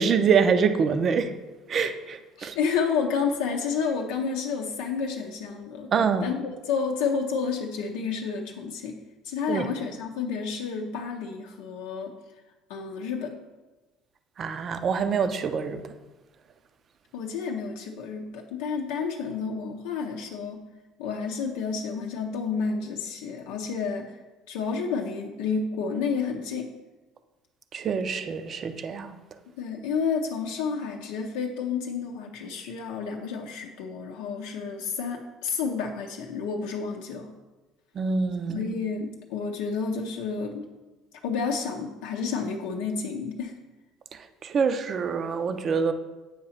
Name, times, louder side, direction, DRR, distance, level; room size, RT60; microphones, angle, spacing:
voice 1, 0.0-1.3 1.7-2.6 5.9-6.3 9.5-9.7 14.4-15.8 27.7-29.2 37.9-38.7 44.1-45.9, right 6 dB, 40° right, 0.5 m, -25 dB
voice 2, 2.4-5.9 6.2-9.0 9.2-12.1 12.7-13.4 17.1-20.7 21.0-24.2 24.5-26.7 29.6-37.3 38.5-40.7 41.2-43.6, left 5 dB, 90° left, 0.6 m, -30 dB
8.4 x 2.9 x 5.6 m
cardioid pair, 120°, 0 cm